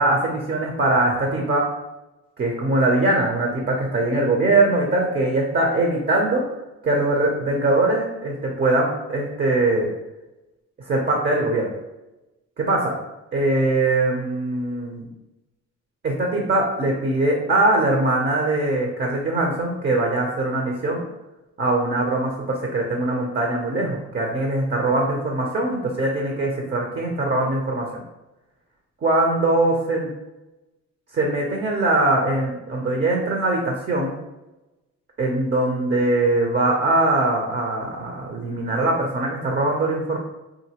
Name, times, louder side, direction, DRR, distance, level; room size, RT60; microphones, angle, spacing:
voice 1, 0.0-1.7 2.4-6.4 6.8-9.9 10.9-11.7 12.6-12.9 13.3-15.1 16.0-21.0 21.6-27.9 29.0-30.1 31.1-34.2 35.2-40.2, right 2 dB, 35° right, 0 dB, 0.7 m, -21 dB
3.8 x 2.6 x 2.9 m, 1.0 s
cardioid pair, 90°, 30 cm